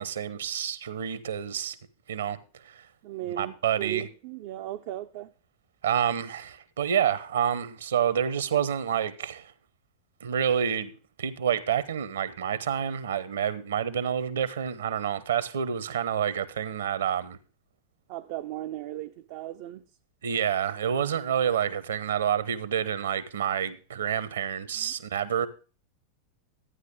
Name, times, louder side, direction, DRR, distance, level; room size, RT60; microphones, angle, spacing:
voice 1, 0.0-1.8 2.1-2.9 3.3-4.1 5.8-9.5 10.2-10.9 11.2-17.4 20.2-25.5, right 8 dB, 65° right, 0.9 m, -28 dB
voice 2, 3.0-5.3 18.1-19.8 24.8-24.9, right 14 dB, 45° right, 0.5 m, -36 dB
12.5 x 9.6 x 3.5 m
figure-of-eight pair, 90°, 0 cm